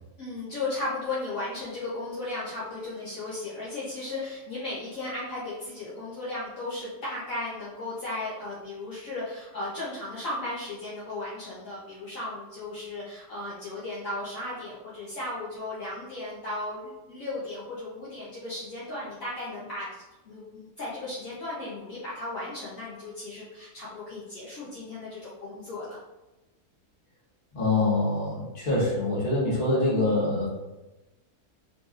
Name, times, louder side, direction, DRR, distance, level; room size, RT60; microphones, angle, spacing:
voice 1, 0.2-19.9 20.2-26.0, left 2 dB, 60° left, -8 dB, 1.1 m, -35 dB
voice 2, 27.5-30.5, left 2 dB, 35° left, -6 dB, 1.3 m, -25 dB
3.9 x 3.2 x 2.4 m, 1.1 s
omnidirectional pair, 1.7 m